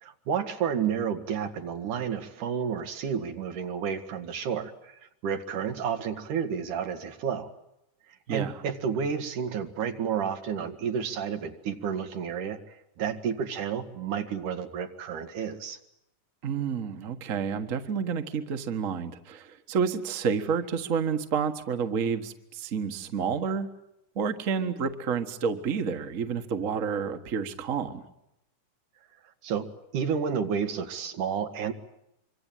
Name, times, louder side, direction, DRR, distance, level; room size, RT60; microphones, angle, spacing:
voice 1, 0.0-7.5 8.3-12.6 13.0-15.8 29.4-31.7, right 7 dB, 85° right, 7 dB, 3.4 m, -31 dB
voice 2, 8.3-8.6 16.4-23.7 24.1-28.0, right 6 dB, 35° right, 7 dB, 1.4 m, -29 dB
25.5 x 24.5 x 9.2 m, 0.82 s
omnidirectional pair, 3.5 m